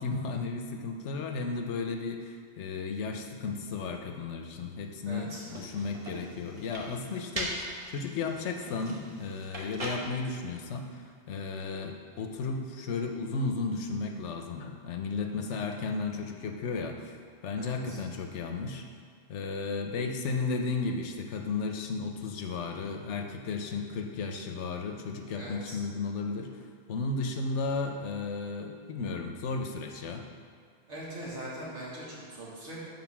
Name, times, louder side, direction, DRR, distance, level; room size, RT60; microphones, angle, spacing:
voice 1, 0.0-17.2 17.4-18.8 19.3-26.5 26.9-30.3, left 4 dB, 85° left, 4 dB, 1.0 m, -34 dB
voice 2, 5.1-5.4 17.6-18.0 25.4-25.8 30.9-32.8, right 1 dB, 80° right, -7 dB, 2.1 m, -41 dB
sound 1, 5.3-10.3, right 1 dB, 35° right, 1.0 m, -41 dB
7.8 x 3.9 x 5.9 m, 2.1 s
omnidirectional pair, 1.2 m